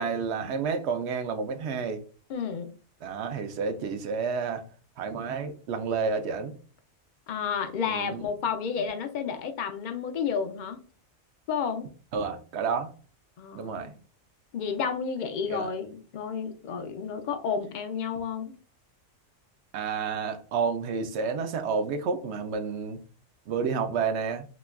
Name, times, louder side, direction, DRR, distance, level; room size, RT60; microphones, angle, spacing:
voice 1, 0.0-2.0 3.0-4.7 5.0-6.5 7.9-8.3 12.1-12.9 13.5-13.9 15.5-15.7 19.7-23.0 23.5-24.5, right 5 dB, 65° right, 0.8 m, -30 dB
voice 2, 2.3-2.7 7.3-10.8 11.5-11.9 13.4-14.0 14.5-18.5, left 6 dB, 70° left, 0.4 m, -31 dB
4.9 x 2.3 x 2.2 m
omnidirectional pair, 1.3 m